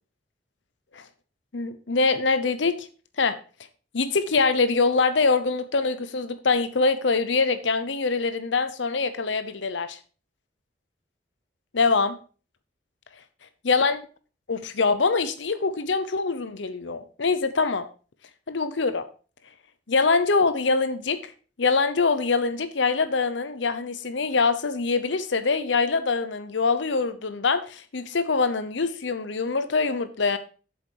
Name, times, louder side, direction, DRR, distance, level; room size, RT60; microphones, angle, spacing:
voice 1, 1.5-2.9 3.2-3.4 3.9-10.0 11.7-12.2 13.6-14.0 14.5-17.8 18.5-19.0 19.9-21.3 21.6-30.4, left 4 dB, 80° left, 12 dB, 0.8 m, -24 dB
8.0 x 7.1 x 4.6 m, 0.36 s
head